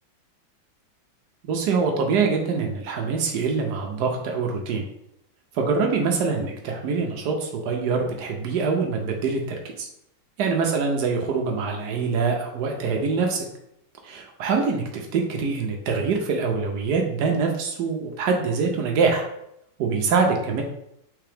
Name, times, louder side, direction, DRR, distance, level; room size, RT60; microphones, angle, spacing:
voice 1, 1.4-4.8 5.5-9.9 10.4-13.5 14.0-19.3 19.8-20.6, right 4 dB, 70° right, 2 dB, 1.0 m, -24 dB
4.7 x 3.4 x 3.3 m, 0.79 s
omnidirectional pair, 2.2 m